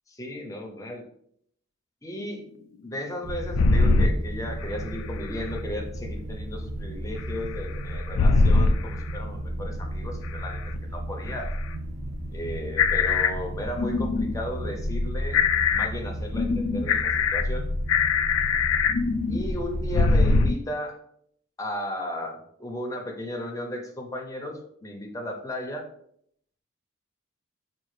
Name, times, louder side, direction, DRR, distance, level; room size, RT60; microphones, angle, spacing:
voice 1, 0.1-1.0 2.0-2.4 2.8-10.6 10.9-11.5 12.3-15.4 15.7-17.7 19.3-21.0 21.6-25.8, left 1 dB, 15° left, 2 dB, 0.6 m, -35 dB
sound 1, 3.2-20.1, right 1 dB, 35° right, 0.4 m, -34 dB
sound 2, 3.5-4.1 4.6-4.7 7.2-7.3 8.1-8.8 10.2-10.3 10.8-10.9 11.3-11.4 12.8-13.3 13.8-14.3 14.8-15.9 16.3-20.5, left 4 dB, 85° left, 0.3 m, -22 dB
4.7 x 2.4 x 3.1 m, 0.69 s
head